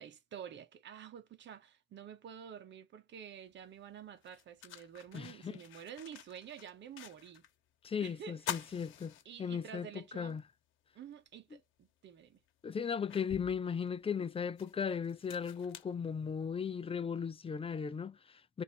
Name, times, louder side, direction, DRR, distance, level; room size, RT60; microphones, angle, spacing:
voice 1, 0.0-7.5 8.0-8.7 9.2-10.4 10.9-12.4, right 8 dB, 65° right, 1.1 m, -49 dB
sound 1, 3.5-3.6 4.2-7.5 7.8-7.9 8.3-9.8 10.3-10.4 11.8-11.9 12.5-16.7, left 12 dB, 90° left, 1.0 m, -47 dB
voice 2, 5.1-5.6 7.8-9.1 9.4-10.4 11.5-11.6 12.6-18.6, left 6 dB, 30° left, 0.5 m, -37 dB
3.3 x 2.8 x 4.3 m
cardioid pair, 90°, 20 cm